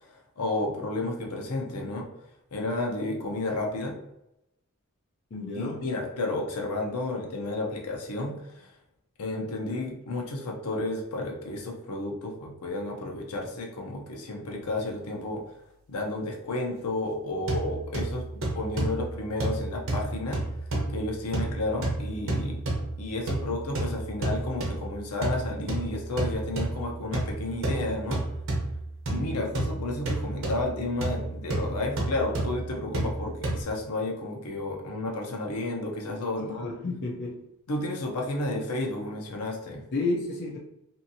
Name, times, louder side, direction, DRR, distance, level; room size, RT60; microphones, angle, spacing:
voice 1, 0.0-2.1 2.5-4.0 5.5-8.7 9.2-15.4 15.9-18.3 18.5-20.4 20.9-22.6 23.0-28.2 29.1-36.7 37.7-39.9, left 2 dB, 90° left, 1 dB, 0.6 m, -32 dB
voice 2, 5.3-5.8 29.1-29.5 36.4-37.4 39.9-40.6, left 2 dB, 50° left, -3 dB, 0.5 m, -32 dB
sound 1, 17.5-33.6, right 2 dB, 60° right, 0.8 m, -31 dB
2.7 x 2.6 x 2.7 m, 0.85 s
head